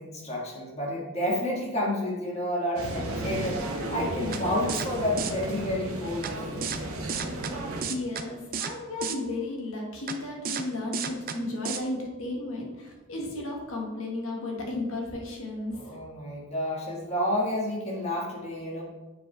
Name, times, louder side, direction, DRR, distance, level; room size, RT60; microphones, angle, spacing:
voice 1, 0.0-6.8 15.7-18.8, left 1 dB, 30° left, -3 dB, 1.8 m, -30 dB
sound 1, 2.8-7.8, right 1 dB, 85° right, 1.2 m, -33 dB
sound 2, 4.3-4.4 4.7-4.9 5.2-5.3 6.2-6.3 6.6-6.8 7.1-7.5 7.8-8.2 8.5-8.7 9.0-9.2 10.1-10.2 10.4-10.6 10.9-11.4 11.6-11.8, right 6 dB, 40° right, 0.5 m, -32 dB
voice 2, 7.9-15.8, left 2 dB, 70° left, -1 dB, 1.8 m, -34 dB
8.5 x 5.0 x 3.4 m, 1.1 s
head